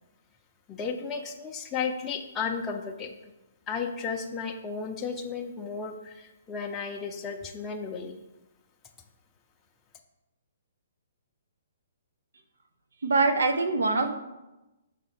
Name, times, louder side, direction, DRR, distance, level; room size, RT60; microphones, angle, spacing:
voice 1, 0.7-3.3 3.7-8.2, left 5 dB, 15° left, 1 dB, 0.5 m, -34 dB
voice 2, 13.0-14.1, right 3 dB, 85° right, 7 dB, 0.8 m, -23 dB
5.7 x 4.2 x 4.2 m, 1.0 s
hypercardioid pair, 150°, 0 cm